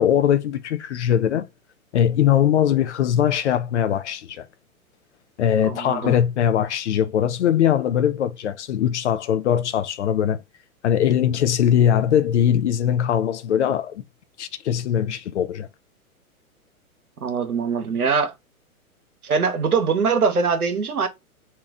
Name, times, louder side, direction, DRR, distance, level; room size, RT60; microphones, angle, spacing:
voice 1, 0.0-1.5 1.9-4.5 5.4-10.4 10.8-14.0 14.4-15.7, left 9 dB, 50° left, 0.5 m, -21 dB
voice 2, 5.6-6.1 17.2-18.3 19.2-21.1, right 5 dB, 80° right, 0.9 m, -22 dB
2.9 x 2.3 x 3.7 m
figure-of-eight pair, 110°, 44 cm